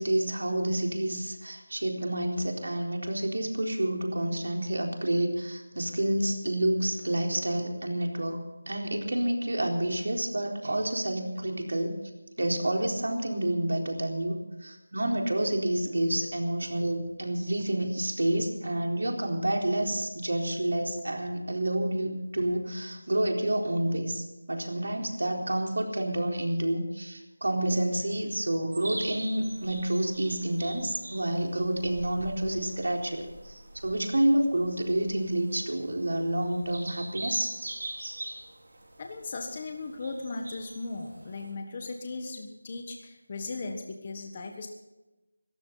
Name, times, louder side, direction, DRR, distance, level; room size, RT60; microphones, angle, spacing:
voice 1, 0.0-12.0 12.4-14.4 14.6-37.7, right 1 dB, 75° right, 2 dB, 4.0 m, -29 dB
sound 1, 28.7-41.5, right 1 dB, 45° right, 4.2 m, -43 dB
voice 2, 39.0-44.7, left 3 dB, 20° left, 4 dB, 1.3 m, -37 dB
21.0 x 15.0 x 4.1 m, 1.0 s
figure-of-eight pair, 175°, 0 cm